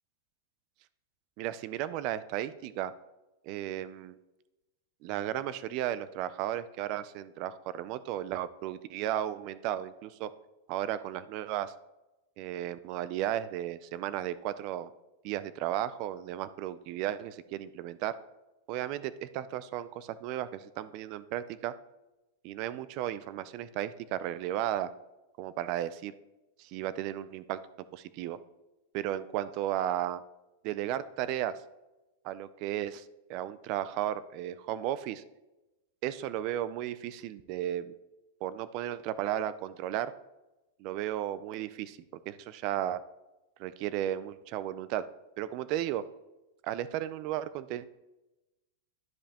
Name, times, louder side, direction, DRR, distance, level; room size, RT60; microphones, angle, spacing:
voice 1, 1.4-2.9 3.4-4.2 5.0-10.3 10.7-11.7 12.4-14.9 15.2-18.2 18.7-21.7 22.4-24.9 25.4-26.1 26.6-27.6 27.9-28.4 28.9-30.2 30.6-31.6 32.2-35.2 36.0-37.9 38.4-40.1 40.8-42.0 42.3-43.0 43.6-45.0 45.4-46.1 46.6-47.9, right 12 dB, 30° right, 15 dB, 0.3 m, -34 dB
12.0 x 5.2 x 2.9 m, 1.0 s
supercardioid pair, 180°, 0 cm